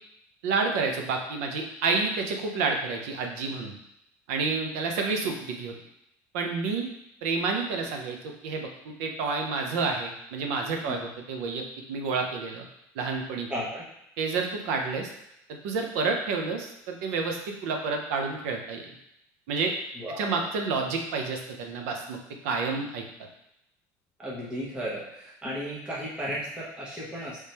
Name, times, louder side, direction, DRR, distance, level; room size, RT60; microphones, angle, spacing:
voice 1, 0.4-3.7 4.3-5.7 6.3-6.9 7.2-12.7 12.9-13.5 14.2-15.1 15.5-18.8 19.5-19.7 20.2-22.2 22.4-23.0, right 4 dB, 85° right, 3 dB, 0.8 m, -29 dB
voice 2, 13.5-13.8 20.0-20.4 24.2-27.4, equal, 10° right, -6 dB, 0.9 m, -34 dB
3.5 x 3.3 x 4.3 m, 0.80 s
cardioid pair, 155°, 8 cm